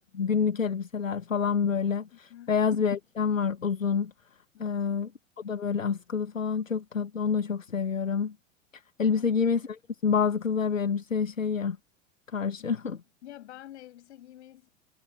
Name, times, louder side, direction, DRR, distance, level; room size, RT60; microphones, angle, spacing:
voice 1, 0.1-4.1 4.6-5.1 5.4-8.3 8.7-11.8 12.3-13.0, left 6 dB, 80° left, 1.3 m, -28 dB
voice 2, 2.1-2.6 4.5-4.8 9.0-9.2 12.4-12.6 13.2-14.7, left 13 dB, 60° left, 6.1 m, -48 dB
figure-of-eight pair, 90°, 39 cm